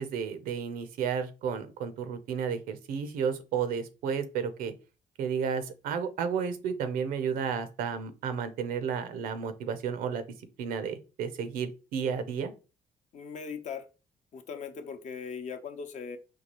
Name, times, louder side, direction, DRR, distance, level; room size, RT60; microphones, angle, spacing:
voice 1, 0.0-4.7 5.2-10.2 10.6-12.5, right 7 dB, 80° right, 11 dB, 0.6 m, -32 dB
voice 2, 13.1-13.9 14.3-16.2, left 6 dB, 55° left, 7 dB, 0.7 m, -39 dB
4.5 x 2.3 x 2.9 m, 0.32 s
supercardioid pair, 70°, 14 cm